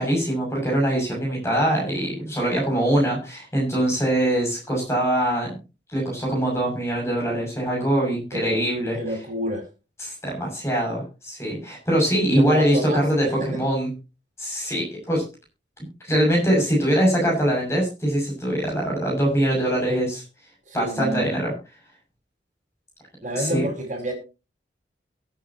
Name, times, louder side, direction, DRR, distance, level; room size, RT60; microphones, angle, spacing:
voice 1, 0.0-5.6 5.9-9.0 10.0-13.9 14.4-15.2 16.0-20.2 20.7-21.5 23.4-23.6, right 1 dB, 15° left, -2 dB, 6.6 m, -23 dB
voice 2, 9.0-9.7 12.3-13.6 19.9-20.1 20.6-21.3 23.2-24.1, equal, 40° right, -1 dB, 5.1 m, -29 dB
23.0 x 8.7 x 2.9 m, 0.30 s
head